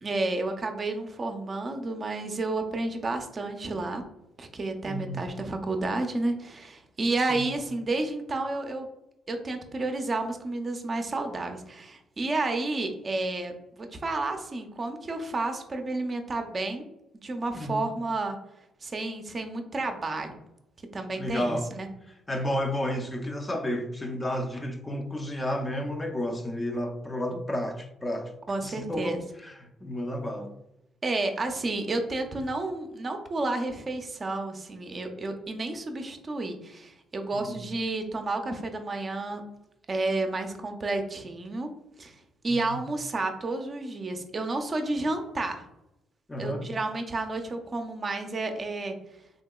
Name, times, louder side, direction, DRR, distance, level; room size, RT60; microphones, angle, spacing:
voice 1, 0.0-4.0 4.4-8.9 9.3-16.9 17.2-18.4 18.8-20.3 20.9-21.9 28.5-29.2 31.0-39.4 39.9-41.7 42.0-45.7 46.4-49.0, right 2 dB, 35° right, 0.5 m, -31 dB
voice 2, 4.8-5.2 7.3-7.5 17.5-17.8 21.1-21.7 22.3-28.4 28.6-30.5 37.3-37.6 42.5-42.8 46.3-46.7, equal, 20° left, 0.4 m, -32 dB
3.6 x 2.7 x 2.3 m
cardioid pair, 90°, 0 cm